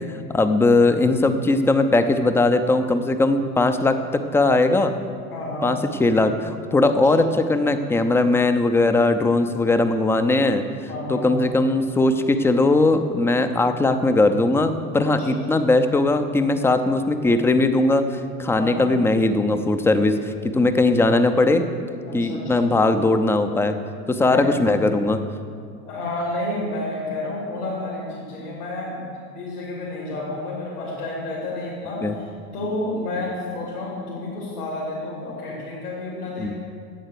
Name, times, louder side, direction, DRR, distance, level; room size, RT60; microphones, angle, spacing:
voice 1, 0.0-4.9 5.6-10.6 11.1-21.7 22.1-23.7 24.1-25.2 32.0-32.1 36.4-36.5, left 2 dB, 5° left, 8 dB, 0.5 m, -19 dB
voice 2, 5.3-5.7 6.9-7.2 10.9-11.4 15.0-15.6 18.5-18.9 22.1-22.7 24.2-24.5 25.9-36.5, left 2 dB, 80° left, -5 dB, 3.0 m, -30 dB
9.1 x 8.0 x 6.6 m, 2.2 s
figure-of-eight pair, 75°, 45 cm